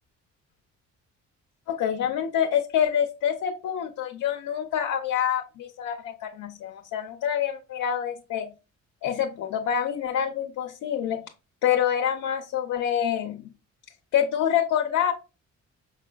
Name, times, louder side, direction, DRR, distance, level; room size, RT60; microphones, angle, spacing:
voice 1, 1.7-8.5 9.0-11.2 11.6-13.5 14.1-15.1, left 9 dB, 70° left, 3 dB, 0.7 m, -26 dB
6.2 x 3.6 x 2.2 m, 0.31 s
cardioid pair, 90°, 30 cm